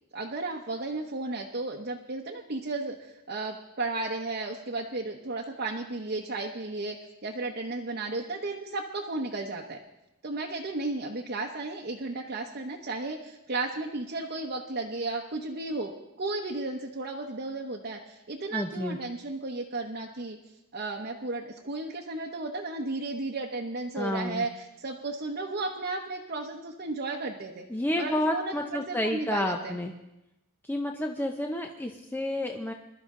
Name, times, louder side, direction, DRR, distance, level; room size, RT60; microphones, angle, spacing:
voice 1, 0.1-7.0 7.2-9.8 10.2-15.9 16.2-20.4 20.7-27.6 28.0-29.8, right 2 dB, 45° right, 0 dB, 1.0 m, -34 dB
voice 2, 18.5-19.0 23.9-24.5 27.7-29.9 30.6-32.7, left 1 dB, 10° left, 3 dB, 0.7 m, -30 dB
21.5 x 12.5 x 3.8 m, 0.91 s
head